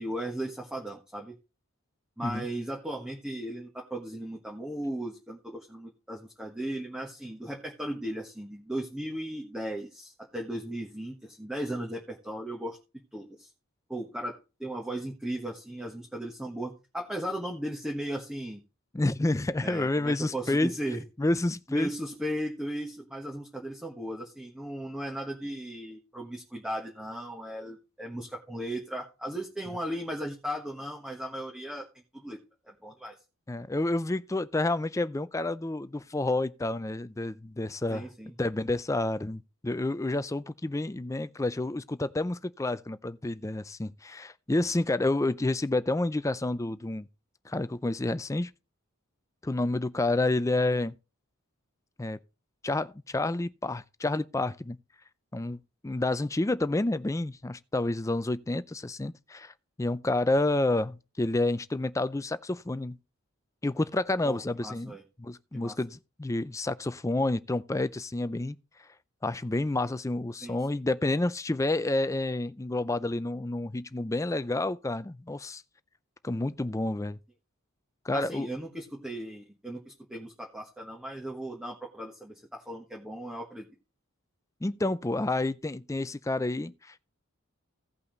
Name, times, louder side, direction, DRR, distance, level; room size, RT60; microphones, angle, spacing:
voice 1, 0.0-1.4 2.2-12.8 13.1-13.5 13.9-18.6 19.6-21.0 21.7-31.8 32.1-32.4 32.6-33.1 37.9-38.3 64.2-65.0 65.5-65.8 70.4-70.6 78.1-83.7, right 1 dB, 5° right, 1.3 m, -36 dB
voice 2, 18.9-20.7 21.2-21.9 33.5-38.1 38.4-47.1 47.5-48.5 49.4-50.9 52.0-52.2 52.6-54.8 55.3-63.0 63.6-64.9 65.2-68.6 69.2-75.6 76.2-77.2 78.0-78.5 84.6-87.0, left 2 dB, 15° left, 0.4 m, -29 dB
16.5 x 5.6 x 4.0 m
head